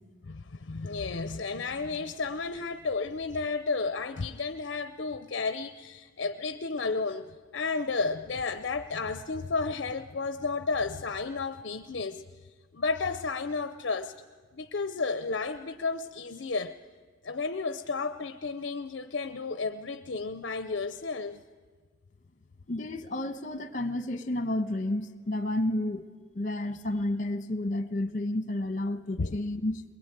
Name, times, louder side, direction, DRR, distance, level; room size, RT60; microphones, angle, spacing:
voice 1, 0.2-7.3 7.5-12.2 12.7-14.1 14.5-16.7 17.2-21.4 29.2-29.4, left 4 dB, 60° left, 10 dB, 0.6 m, -32 dB
voice 2, 22.7-26.1 26.3-29.8, left 1 dB, 40° left, 11 dB, 1.2 m, -31 dB
22.0 x 21.5 x 9.2 m, 1.5 s
head